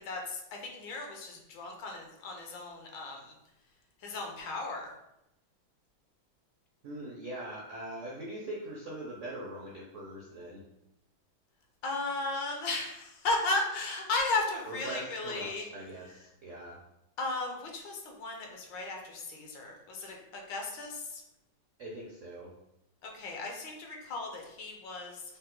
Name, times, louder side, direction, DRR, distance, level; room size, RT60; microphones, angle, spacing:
voice 1, 0.0-3.3 4.0-4.9 11.8-15.6 17.2-21.2 23.0-25.4, left 2 dB, 70° left, 1 dB, 1.4 m, -35 dB
voice 2, 6.8-10.6 14.7-16.8 21.8-22.5, right 1 dB, 70° right, -3 dB, 0.7 m, -42 dB
5.1 x 2.1 x 4.3 m, 0.86 s
omnidirectional pair, 2.2 m